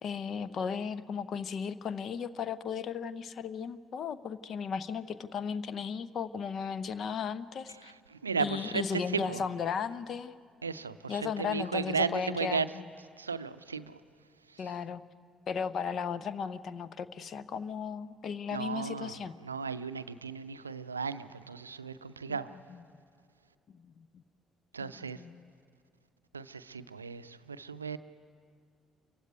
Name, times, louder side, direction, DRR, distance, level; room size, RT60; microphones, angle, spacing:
voice 1, 0.0-7.9 8.4-10.4 11.1-12.9 14.6-15.0 15.5-19.3 22.3-22.4 22.7-22.8 23.7-24.2 24.8-25.5, left 6 dB, 50° left, 15 dB, 0.8 m, -36 dB
voice 2, 7.8-9.4 10.6-12.7 13.2-14.0 14.5-14.7 18.5-22.5 24.7-25.2 26.3-28.0, right 5 dB, 85° right, 13 dB, 0.5 m, -35 dB
28.0 x 15.5 x 9.4 m, 2.2 s
figure-of-eight pair, 45°, 0 cm